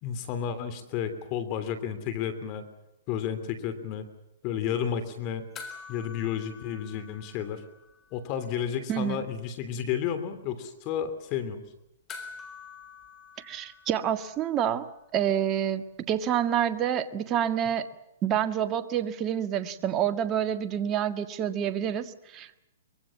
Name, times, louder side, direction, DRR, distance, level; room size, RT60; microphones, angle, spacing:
voice 1, 0.0-2.6 3.1-4.0 4.4-5.5 5.9-7.6 8.1-11.6, left 8 dB, 35° left, 11 dB, 3.0 m, -32 dB
sound 1, 5.5-8.2 8.5-8.6 12.1-14.7 16.8-16.9, left 5 dB, 20° left, 3.9 m, -46 dB
voice 2, 8.9-9.2 13.4-17.9 18.2-22.6, right 9 dB, 25° right, 9 dB, 1.7 m, -28 dB
24.0 x 23.0 x 7.3 m, 0.86 s
hypercardioid pair, 140°, 0 cm